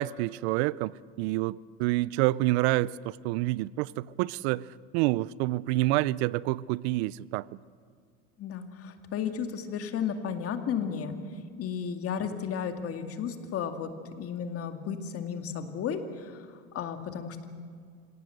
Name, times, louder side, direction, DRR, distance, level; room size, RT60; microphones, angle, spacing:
voice 1, 0.0-7.5 12.3-12.4, right 18 dB, 80° right, 0.6 m, -28 dB
voice 2, 8.4-11.1 11.6-13.9 14.2-16.5 16.7-17.5, left 7 dB, 45° left, 2.3 m, -33 dB
26.5 x 17.5 x 8.0 m
supercardioid pair, 120°, 31 cm